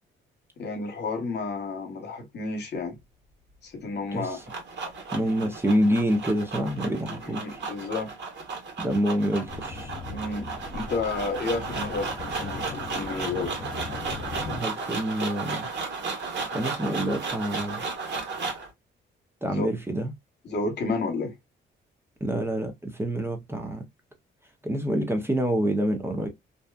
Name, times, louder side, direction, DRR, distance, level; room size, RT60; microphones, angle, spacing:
voice 1, 0.6-3.0 3.6-4.4 7.3-8.1 10.1-13.5 19.5-19.7 20.4-21.3, left 3 dB, 60° left, 1.1 m, -31 dB
voice 2, 4.1-4.4 5.1-7.6 8.8-9.9 14.5-15.7 16.2-17.8 19.4-20.1 22.2-23.9 24.6-26.3, equal, 10° right, 0.6 m, -27 dB
sound 1, 4.1-18.7, right 4 dB, 60° right, 1.3 m, -34 dB
sound 2, 9.5-14.6, left 4 dB, 25° left, 0.7 m, -38 dB
2.6 x 2.3 x 2.2 m
cardioid pair, 90°, 20 cm